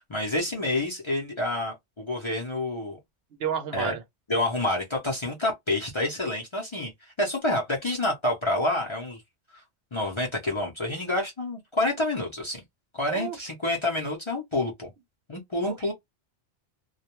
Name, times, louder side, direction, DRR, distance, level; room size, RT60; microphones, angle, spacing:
voice 1, 0.1-3.0 3.7-4.0 4.3-6.9 7.2-9.2 9.9-12.6 12.9-14.9 15.3-15.9, left 1 dB, 35° left, 0.6 m, -28 dB
voice 2, 3.4-4.0 13.1-13.4 15.6-15.9, right 8 dB, 70° right, 0.8 m, -31 dB
2.3 x 2.1 x 2.9 m
omnidirectional pair, 1.2 m